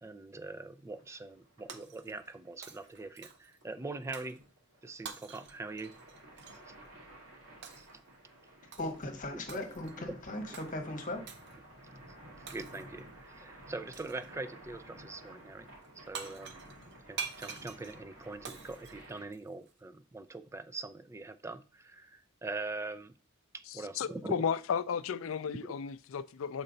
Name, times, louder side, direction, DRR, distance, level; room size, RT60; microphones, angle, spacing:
voice 1, 0.0-4.4 4.8-5.9 6.7-6.8 7.8-7.9 9.3-9.5 10.0-10.2 12.5-15.7 16.0-16.7 17.1-23.1 23.5-24.3 25.6-25.8, right 3 dB, 15° right, 0.3 m, -43 dB
sound 1, 0.9-19.3, right 1 dB, 85° right, 2.5 m, -54 dB
Shatter, 1.7-2.4 2.6-3.6 4.1-4.4 5.0-6.6 7.6-8.0 8.7-9.0 9.5-10.0 10.5-10.7 11.3-11.5 12.5-13.0 13.9-14.3 15.8-15.9 16.1-19.7, right 6 dB, 55° right, 0.7 m, -46 dB
voice 2, 8.8-11.3, left 1 dB, 40° left, 1.2 m, -38 dB
voice 3, 24.0-26.6, left 7 dB, 70° left, 0.4 m, -33 dB
6.6 x 4.3 x 3.9 m
head